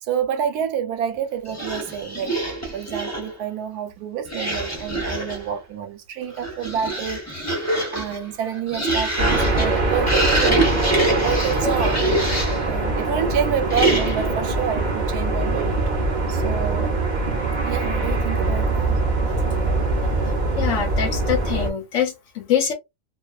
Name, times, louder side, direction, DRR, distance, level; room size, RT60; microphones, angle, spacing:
voice 1, 0.0-2.4 2.7-12.1 12.7-15.8 16.3-17.0 17.6-19.0, right 8 dB, 85° right, 1.1 m, -28 dB
sound 1, 1.5-3.4 4.2-5.5 6.2-12.7 13.7-14.4, right 1 dB, 20° left, 0.4 m, -25 dB
sound 2, 9.2-21.7, right 2 dB, 50° right, 0.5 m, -23 dB
voice 2, 20.6-22.7, left 9 dB, 70° left, 0.8 m, -24 dB
2.4 x 2.3 x 2.3 m
omnidirectional pair, 1.6 m